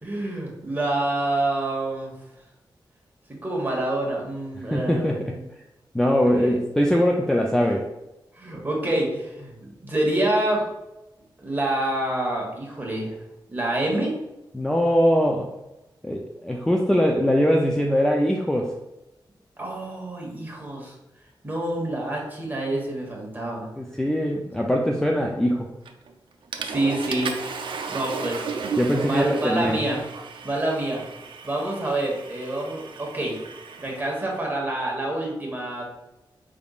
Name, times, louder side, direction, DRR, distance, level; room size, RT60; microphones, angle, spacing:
voice 1, 0.0-2.1 3.3-5.4 6.5-6.6 8.4-9.5 9.8-10.7 11.4-13.1 13.5-14.2 19.6-20.9 21.4-23.7 26.6-27.3 27.9-28.5 29.0-30.0 30.4-31.0 31.4-33.4 33.8-35.8, right 1 dB, 25° right, -2 dB, 1.3 m, -27 dB
voice 2, 4.7-5.2 5.9-7.8 14.5-15.5 16.0-18.7 23.8-25.7 28.8-29.8, equal, 5° left, 0 dB, 0.4 m, -22 dB
Water / Toilet flush, 25.9-26.1 26.5-34.4, right 5 dB, 80° right, 0.4 m, -35 dB
5.0 x 3.5 x 2.4 m, 0.95 s
wide cardioid pair, 95°, 8 cm